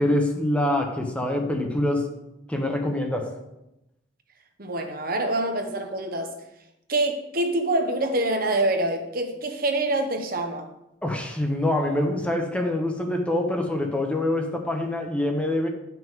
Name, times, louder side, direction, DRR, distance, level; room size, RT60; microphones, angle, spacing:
voice 1, 0.0-2.1 2.5-3.3 11.0-15.7, left 1 dB, 5° left, 2 dB, 1.0 m, -25 dB
voice 2, 4.6-6.3 6.9-10.7, right 2 dB, 50° right, 5 dB, 1.1 m, -25 dB
11.0 x 5.9 x 3.6 m, 0.90 s
head